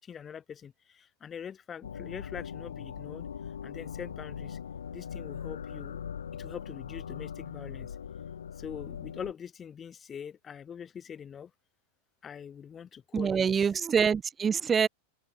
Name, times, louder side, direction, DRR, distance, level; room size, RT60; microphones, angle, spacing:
voice 1, 0.0-3.3 3.6-4.6 4.9-6.1 6.4-8.0 8.6-11.5 12.2-13.5, left 8 dB, 20° left, 7.5 m, -43 dB
sound 1, 1.8-9.3, left 8 dB, 70° left, 2.8 m, -40 dB
voice 2, 13.1-14.9, right 6 dB, 20° right, 1.0 m, -25 dB
open air
figure-of-eight pair, 90°, 0 cm